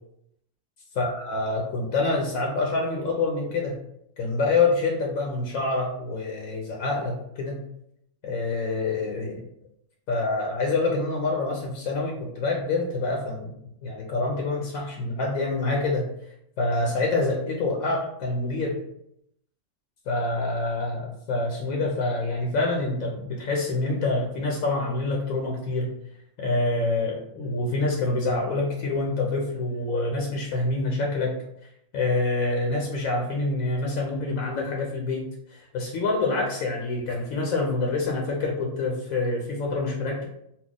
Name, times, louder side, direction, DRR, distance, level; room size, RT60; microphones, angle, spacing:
voice 1, 1.0-3.8 4.2-7.7 8.2-9.4 10.1-13.5 13.8-16.1 16.6-18.8 20.1-25.9 26.4-31.4 31.9-40.3, left 3 dB, 80° left, 0 dB, 1.0 m, -26 dB
2.8 x 2.1 x 3.7 m, 0.75 s
omnidirectional pair, 1.4 m